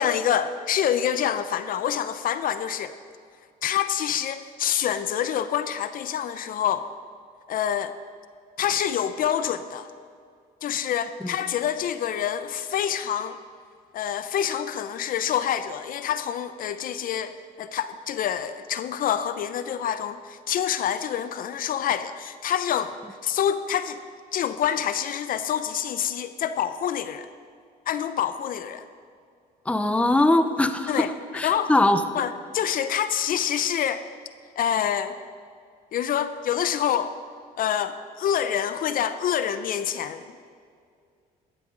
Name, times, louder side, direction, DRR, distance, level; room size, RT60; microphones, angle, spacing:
voice 1, 0.0-2.9 3.6-6.9 7.5-7.9 8.6-9.9 10.6-13.4 13.9-23.0 23.2-24.0 24.3-27.3 27.9-28.8 30.9-31.1 31.4-31.7 32.1-34.0 34.6-35.2 35.9-37.1 37.6-40.3, left 9 dB, 55° left, 12 dB, 0.6 m, -26 dB
voice 2, 29.7-32.0, left 2 dB, 5° left, 9 dB, 0.7 m, -21 dB
15.0 x 12.0 x 3.8 m, 2.2 s
cardioid pair, 110°, 17 cm